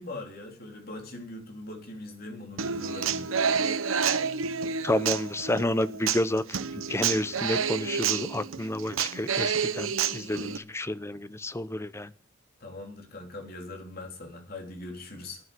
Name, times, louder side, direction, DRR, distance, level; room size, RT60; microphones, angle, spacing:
voice 1, 0.0-3.3 12.6-15.4, left 2 dB, 50° left, 2 dB, 3.5 m, -41 dB
Human voice / Acoustic guitar, 2.6-10.6, right 6 dB, 90° right, 0.9 m, -29 dB
voice 2, 4.8-12.1, left 1 dB, 15° left, 14 dB, 0.6 m, -30 dB
10.5 x 9.7 x 7.7 m, 0.42 s
head